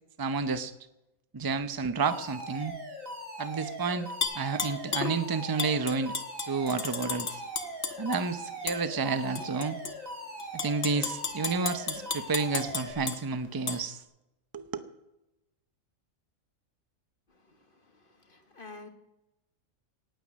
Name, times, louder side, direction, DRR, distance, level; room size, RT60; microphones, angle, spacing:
voice 1, 0.2-0.7 1.3-2.8 3.4-4.1 4.3-6.1 6.5-7.4 8.0-9.8 10.5-14.0 14.5-14.7, right 4 dB, 20° right, 10 dB, 0.6 m, -30 dB
Alarm, 2.1-12.9, right 1 dB, 80° right, 3.0 m, -40 dB
Tap / Glass, 4.2-5.1 5.6-8.2 8.7-8.8 9.3-9.9 10.4-13.2 13.7-13.8, left 5 dB, 60° left, 1.4 m, -33 dB
voice 2, 17.3-18.9, left 3 dB, 40° left, 4 dB, 1.8 m, -50 dB
18.5 x 9.2 x 6.4 m, 0.93 s
omnidirectional pair, 1.4 m